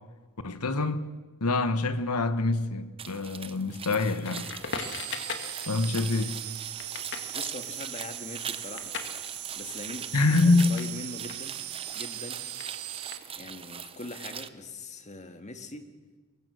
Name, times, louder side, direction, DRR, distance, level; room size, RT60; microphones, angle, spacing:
voice 1, 0.4-1.1 1.4-4.5 5.7-6.4 10.1-10.8, left 3 dB, 85° left, 1.3 m, -25 dB
sound 1, 3.0-14.5, right 7 dB, 25° right, 0.7 m, -42 dB
Crackle, 4.2-11.0 11.2-13.7, left 5 dB, 55° left, 2.1 m, -41 dB
sound 2, 4.8-13.2, right 13 dB, 75° right, 1.2 m, -39 dB
voice 2, 7.3-9.0 9.5-11.6 11.9-12.4 13.3-15.9, left 2 dB, 30° left, 1.9 m, -42 dB
23.5 x 23.0 x 6.4 m
head